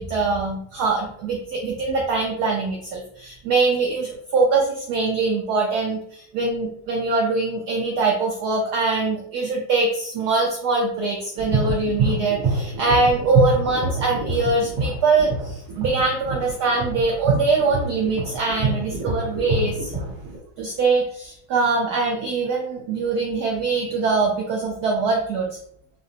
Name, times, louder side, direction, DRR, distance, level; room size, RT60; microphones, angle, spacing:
voice 1, 0.0-19.9 20.6-25.6, right 3 dB, 75° right, 0 dB, 0.9 m, -23 dB
sound 1, 11.4-20.4, right 3 dB, 60° right, 1.4 m, -25 dB
4.9 x 2.0 x 2.7 m, 0.68 s
omnidirectional pair, 2.3 m